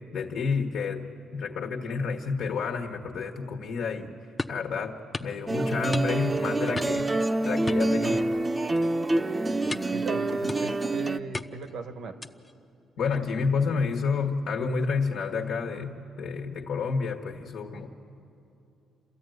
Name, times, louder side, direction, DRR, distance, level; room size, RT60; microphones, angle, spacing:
voice 1, 0.1-1.0 1.3-4.1 4.5-8.3 13.0-17.9, left 5 dB, 75° left, 2 dB, 1.5 m, -29 dB
sound 1, 4.4-4.7 5.1-5.4 5.9-6.4 6.7-7.1 7.7-8.4 8.7-9.0 9.7-10.0 10.5-10.9 11.3-11.7 12.2-12.5, left 2 dB, 20° left, 0.7 m, -36 dB
sound 2, 5.5-11.2, right 2 dB, 25° right, 0.8 m, -27 dB
voice 2, 9.4-12.2, right 4 dB, 75° right, 8 dB, 1.4 m, -38 dB
28.5 x 13.5 x 9.3 m, 2.8 s
cardioid pair, 90°, 0 cm